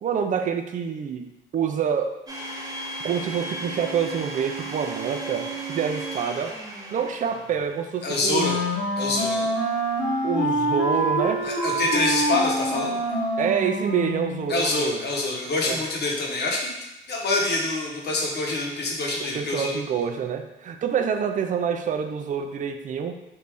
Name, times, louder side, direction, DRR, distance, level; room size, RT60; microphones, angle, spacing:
voice 1, 0.0-2.2 3.0-6.5 6.9-8.6 10.2-11.5 13.4-15.0 15.6-15.8 19.2-23.2, right 7 dB, 40° right, 6 dB, 0.4 m, -27 dB
Domestic sounds home sounds, 2.3-7.8, right 3 dB, 20° right, 0.7 m, -35 dB
voice 2, 8.0-8.6 9.0-9.5 11.4-13.0 14.5-16.7 17.1-19.7, left 2 dB, 55° left, -1 dB, 0.9 m, -26 dB
Wind instrument woodwind instrument, 8.3-14.5, equal, 80° left, 1.1 m, -26 dB
3.2 x 2.6 x 3.4 m, 0.94 s
cardioid pair, 90°, 20 cm